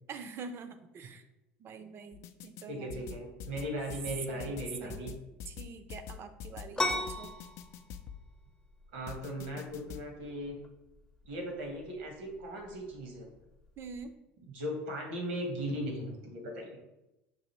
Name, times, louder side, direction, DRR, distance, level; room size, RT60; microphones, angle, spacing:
voice 1, 0.1-1.2 1.6-3.1 4.3-5.1 5.5-7.3 13.8-14.1, right 5 dB, 45° right, 9 dB, 0.5 m, -45 dB
sound 1, 2.1-2.6 2.9-8.2 9.1-10.0, left 8 dB, 60° left, 0.3 m, -44 dB
voice 2, 2.7-5.1 8.9-10.6 11.2-13.3 14.4-16.7, equal, 80° right, 1 dB, 1.2 m, -38 dB
sound 2, 6.8-14.1, left 2 dB, 15° left, 0.6 m, -40 dB
6.0 x 2.5 x 3.0 m, 0.92 s
hypercardioid pair, 80°, 6 cm